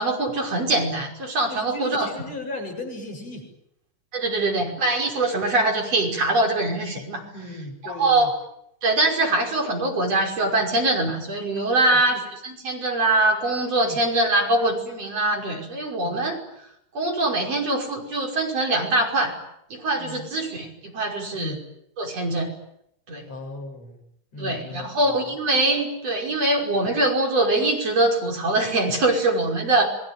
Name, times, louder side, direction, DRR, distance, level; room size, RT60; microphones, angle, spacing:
voice 1, 0.0-2.1 4.1-7.2 7.8-8.3 8.8-16.4 16.9-19.3 19.7-21.6 22.0-22.5 23.1-23.2 24.4-29.9, right 2 dB, 55° right, 2 dB, 6.7 m, -23 dB
voice 2, 1.5-3.5 7.3-8.3 11.8-12.2 13.8-14.0 16.0-16.2 19.9-20.3 21.3-21.6 23.3-24.0 24.3-25.4, left 2 dB, 60° left, 2 dB, 8.5 m, -37 dB
27.5 x 22.0 x 9.4 m, 0.76 s
omnidirectional pair, 3.3 m